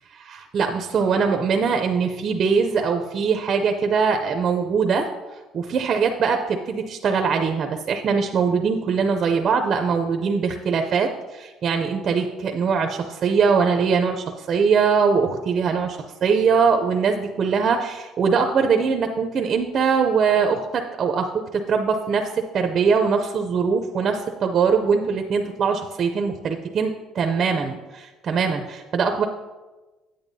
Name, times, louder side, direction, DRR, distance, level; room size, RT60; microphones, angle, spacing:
voice 1, 0.1-5.1 5.5-29.2, right 5 dB, 35° right, 4 dB, 0.5 m, -22 dB
9.0 x 8.8 x 2.7 m, 1.2 s
cardioid pair, 170°, 0 cm